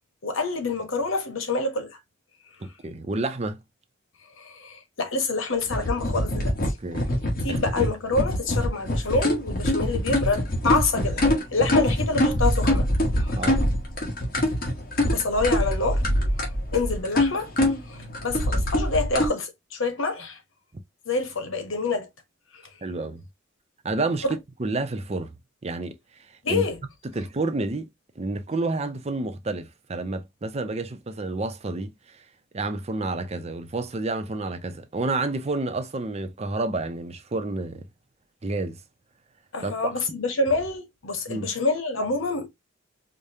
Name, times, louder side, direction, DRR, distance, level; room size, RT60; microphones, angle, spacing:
voice 1, 0.2-2.0 4.4-6.7 7.4-12.9 13.2-13.4 15.1-16.0 16.7-17.5 17.9-20.4 21.0-22.1 22.5-22.6 24.2-24.4 26.4-26.8 39.5-42.5, left 3 dB, 90° left, 1.1 m, -27 dB
voice 2, 2.6-3.6 6.8-7.1 7.5-7.6 13.4-13.7 22.8-23.2 23.8-25.3 25.6-26.7 27.1-27.9 28.2-32.2 32.5-37.8 38.4-38.8 39.6-39.9 41.3-41.5, right 2 dB, 35° right, 0.6 m, -30 dB
sound 1, 5.7-19.3, left 1 dB, 50° left, 1.5 m, -24 dB
4.9 x 2.2 x 2.7 m
head